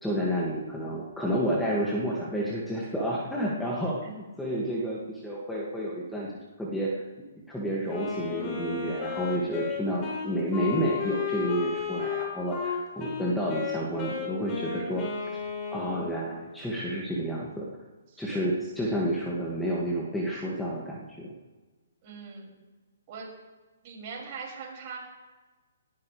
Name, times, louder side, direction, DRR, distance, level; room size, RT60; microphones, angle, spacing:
voice 1, 0.0-4.1 4.4-6.3 6.6-6.9 7.5-15.0 15.7-17.7 18.2-21.3, equal, 5° left, -5 dB, 2.4 m, -30 dB
Wind instrument woodwind instrument, 7.9-16.3, left 6 dB, 25° left, 4.4 m, -33 dB
voice 2, 18.1-18.5 22.0-22.6 23.1-23.3 23.8-25.0, right 5 dB, 35° right, -3 dB, 6.7 m, -41 dB
19.5 x 16.5 x 3.5 m, 1.3 s
figure-of-eight pair, 135°, 0 cm